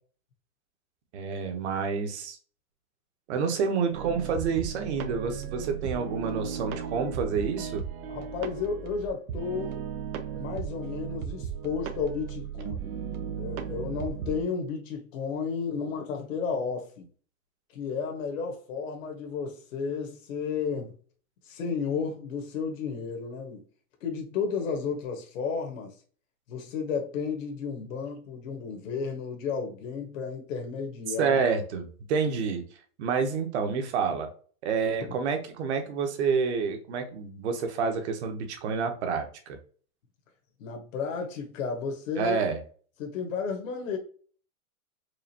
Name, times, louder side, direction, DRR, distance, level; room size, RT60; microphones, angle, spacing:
voice 1, 1.1-2.4 3.3-7.9 31.2-32.6 33.0-34.3 34.6-39.6 42.2-42.6, right 5 dB, 50° right, 1.0 m, -28 dB
sound 1, 3.9-14.4, right 7 dB, 80° right, 0.8 m, -36 dB
voice 2, 8.1-9.8 10.3-12.9 13.4-17.1 17.7-20.9 21.5-23.6 24.0-25.9 26.5-31.4 35.0-35.1 40.6-42.4 43.0-44.0, left 5 dB, 60° left, 1.3 m, -33 dB
4.8 x 2.5 x 2.8 m
hypercardioid pair, 160°, 43 cm